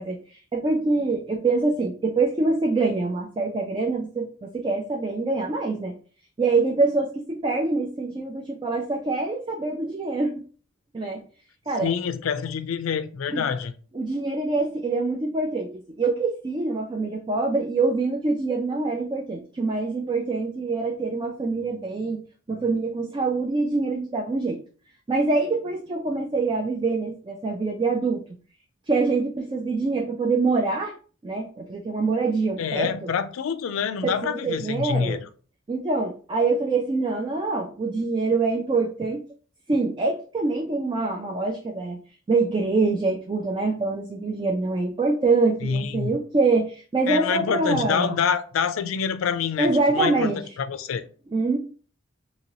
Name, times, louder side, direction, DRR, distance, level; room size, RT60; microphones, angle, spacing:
voice 1, 0.0-5.9 6.4-10.3 10.9-11.2 11.7-11.9 13.3-13.4 13.9-22.2 22.5-24.6 25.1-28.2 28.9-30.9 31.2-33.1 34.0-35.2 35.7-39.2 39.7-42.0 42.3-48.2 49.6-50.4 51.3-51.6, right 3 dB, 25° right, 0.3 m, -25 dB
voice 2, 11.8-13.7 32.6-35.2 45.6-46.1 47.1-51.0, left 6 dB, 75° left, 0.4 m, -26 dB
2.8 x 2.7 x 2.9 m
head